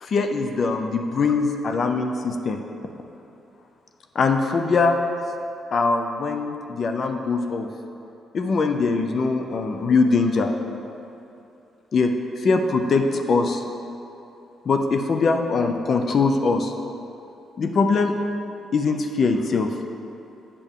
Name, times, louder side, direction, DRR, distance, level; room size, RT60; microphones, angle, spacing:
voice 1, 0.0-2.6 4.1-5.0 5.7-7.7 8.3-10.5 11.9-12.1 12.4-13.6 14.7-16.7 17.6-18.2 18.7-19.8, left 4 dB, 50° left, 5 dB, 0.5 m, -22 dB
7.2 x 6.7 x 3.6 m, 2.8 s
cardioid pair, 90°, 0 cm